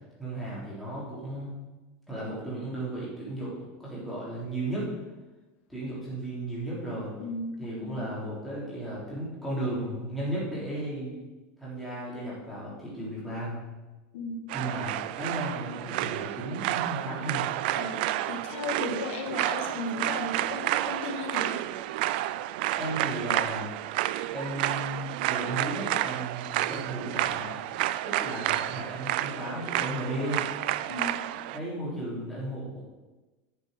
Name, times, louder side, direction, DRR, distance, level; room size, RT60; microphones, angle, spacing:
voice 1, 0.2-1.5 2.1-3.5 3.8-4.9 5.7-7.1 7.6-11.1 11.6-13.6 14.5-17.5 22.8-23.7 24.3-27.6 28.0-30.5 31.5-32.8, right 1 dB, ahead, -8 dB, 3.6 m, -35 dB
voice 2, 7.2-7.5 7.8-8.0 14.1-14.4 17.7-18.0 18.2-21.6 30.9-31.2, left 3 dB, 75° left, 3 dB, 1.6 m, -35 dB
sound 1, 14.5-31.6, right 15 dB, 55° right, 0.4 m, -30 dB
10.0 x 6.9 x 6.6 m, 1.2 s
supercardioid pair, 180°, 6 cm